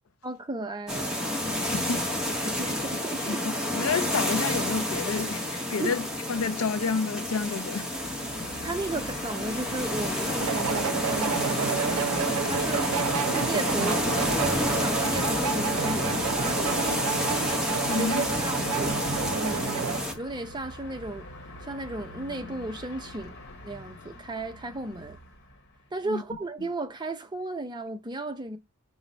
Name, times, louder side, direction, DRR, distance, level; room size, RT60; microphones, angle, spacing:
voice 1, 0.2-1.4 2.4-3.4 5.8-5.9 8.6-12.9 13.3-14.0 14.3-17.1 18.0-19.0 19.3-21.3 21.6-23.3 23.6-25.2 25.9-28.6, right 2 dB, 20° right, 0.5 m, -35 dB
sound 1, 0.9-20.1, left 1 dB, 5° right, 0.9 m, -29 dB
voice 2, 1.6-2.0 2.7-2.8 3.3-7.9 17.9-18.3 26.1-26.2 26.6-26.7, left 5 dB, 70° left, 0.5 m, -30 dB
Train, 7.7-25.8, left 2 dB, 50° left, 1.0 m, -42 dB
sound 2, 10.4-20.0, right 8 dB, 75° right, 0.4 m, -30 dB
5.7 x 2.1 x 3.9 m
head